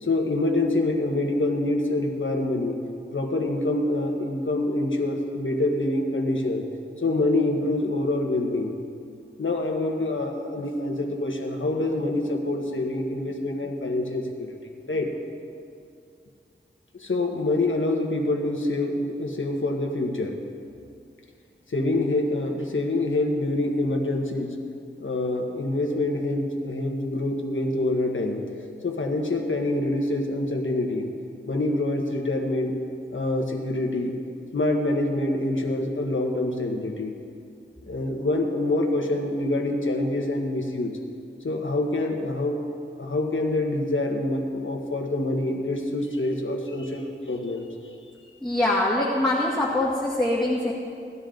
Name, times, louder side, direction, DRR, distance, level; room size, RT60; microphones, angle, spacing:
voice 1, 0.0-2.8 3.1-6.6 7.0-8.7 9.4-14.6 14.8-15.1 16.9-20.4 21.7-24.6 25.0-28.5 28.8-31.1 31.5-32.7 33.1-34.2 34.5-37.1 37.8-40.9 41.4-42.6 43.0-47.9, left 2 dB, 80° left, 2 dB, 1.5 m, -26 dB
voice 2, 48.4-50.7, left 1 dB, ahead, -6 dB, 2.0 m, -23 dB
18.0 x 12.5 x 3.9 m, 2.4 s
wide cardioid pair, 65°, 20 cm